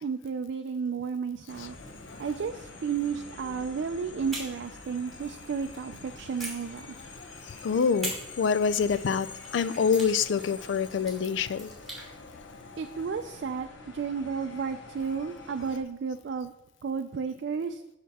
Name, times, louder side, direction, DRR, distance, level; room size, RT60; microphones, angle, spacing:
voice 1, 0.0-1.8 2.2-7.0 12.8-16.5 16.8-17.8, right 6 dB, 65° right, 7 dB, 0.4 m, -32 dB
sound 1, 1.5-15.8, left 3 dB, 90° left, 1.0 m, -46 dB
sound 2, 4.3-5.8 6.4-7.4 8.0-12.1, right 2 dB, ahead, 2.5 m, -42 dB
voice 2, 7.6-9.3 9.5-11.7, left 6 dB, 75° left, 15 dB, 0.4 m, -26 dB
8.4 x 5.8 x 4.1 m, 0.95 s
head